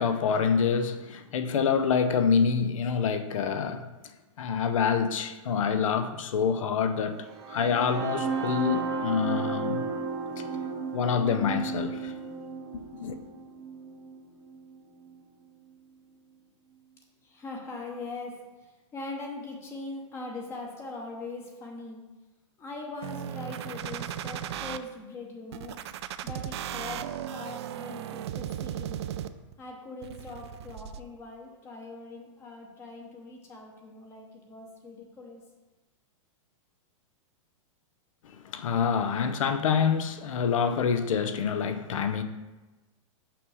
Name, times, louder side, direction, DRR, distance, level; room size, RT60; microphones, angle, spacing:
voice 1, 0.0-3.9 4.4-9.8 10.4-10.5 10.9-12.1 12.7-13.2 38.2-42.2, left 6 dB, 85° left, 0.6 m, -27 dB
sound 1, 7.3-15.2, right 4 dB, 20° right, 0.7 m, -34 dB
voice 2, 17.2-22.0 22.6-25.8 26.2-29.0 29.6-35.4, left 3 dB, 15° left, 0.7 m, -41 dB
sound 2, 23.0-24.8 25.5-29.5 30.0-31.0, right 10 dB, 55° right, 0.4 m, -36 dB
5.8 x 5.3 x 4.8 m
supercardioid pair, 170°, 16 cm